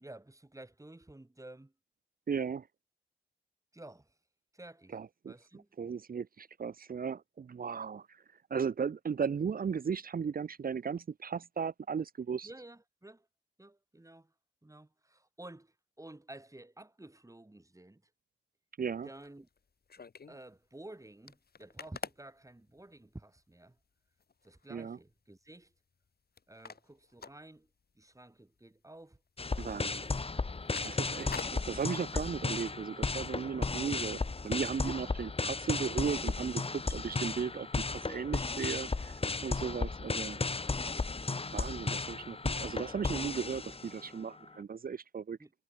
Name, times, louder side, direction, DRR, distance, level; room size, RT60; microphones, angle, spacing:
voice 1, 0.0-1.7 3.7-4.2 4.5-5.0 5.3-5.7 12.4-13.3 13.6-14.3 14.6-18.1 19.0-19.5 20.3-23.8 24.4-25.7 26.5-27.7 27.9-29.2 29.7-30.2 30.6-31.0 33.5-33.8 45.4-45.5, right 1 dB, 15° right, 5.3 m, -52 dB
voice 2, 2.3-2.7 4.9-5.3 5.8-8.1 8.5-12.5 18.8-19.1 24.7-25.0 29.6-30.0 30.8-34.2 34.4-39.1 39.4-40.4 41.5-45.4, right 6 dB, 45° right, 0.5 m, -36 dB
sound 1, 19.0-20.4 20.8-20.9 21.1-23.2 23.8-23.9 24.2-24.7 25.1-26.1 26.4-28.1 28.4-28.6 29.0-29.4 29.7-29.9 30.3-32.3, left 5 dB, 50° left, 1.9 m, -47 dB
sound 2, 29.4-44.1, left 3 dB, 30° left, 1.1 m, -35 dB
wide cardioid pair, 105°, 20 cm